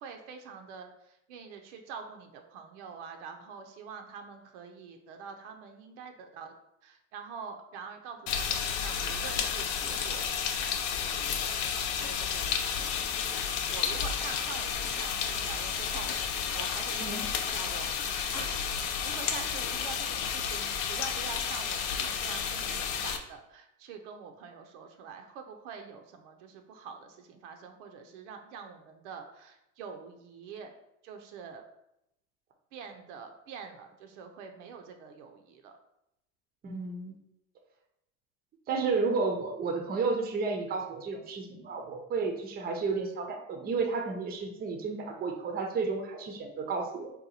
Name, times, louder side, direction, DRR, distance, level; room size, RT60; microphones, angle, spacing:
voice 1, 0.0-6.5 6.8-10.3 11.1-11.6 11.9-12.5 12.8-30.7 31.0-31.6 32.7-35.7, right 6 dB, 75° right, 5 dB, 0.6 m, -45 dB
sound 1, 8.3-23.2, left 7 dB, 60° left, 0.5 m, -32 dB
voice 2, 36.6-37.1 38.7-47.1, right 4 dB, 25° right, 4 dB, 0.5 m, -32 dB
2.8 x 2.2 x 4.0 m, 0.84 s
supercardioid pair, 100°, 36 cm